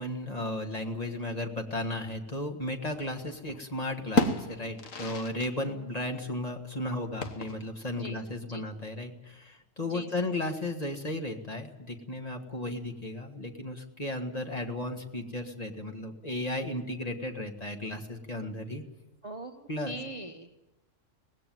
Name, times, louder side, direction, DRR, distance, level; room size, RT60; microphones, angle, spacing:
voice 1, 0.0-18.8 19.7-20.0, left 1 dB, 30° left, 4 dB, 1.8 m, -35 dB
sound 1, 2.8-3.6 3.9-5.5 5.8-5.9 7.2-7.8, left 2 dB, 85° left, 1.7 m, -32 dB
voice 2, 5.6-5.9 8.0-8.2 8.5-8.6 9.8-10.2 19.2-20.5, right 1 dB, 30° right, 7 dB, 0.9 m, -42 dB
18.5 x 16.0 x 9.3 m, 1.0 s
omnidirectional pair, 1.3 m